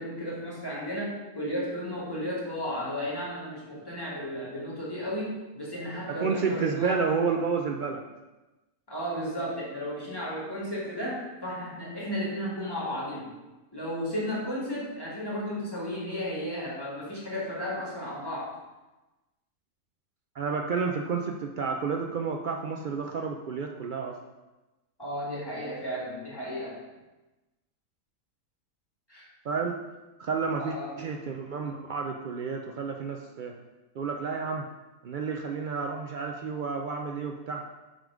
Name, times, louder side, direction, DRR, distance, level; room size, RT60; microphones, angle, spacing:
voice 1, 0.0-7.0 8.9-13.3 13.7-18.5 25.0-26.8 29.1-29.3 30.6-30.9, equal, 15° left, -6 dB, 2.0 m, -34 dB
voice 2, 6.1-8.0 20.3-24.2 29.4-29.8 30.2-33.6 33.9-34.7 35.0-37.6, right 5 dB, 80° right, 2 dB, 0.4 m, -30 dB
7.4 x 3.5 x 4.9 m, 1.1 s
omnidirectional pair, 1.4 m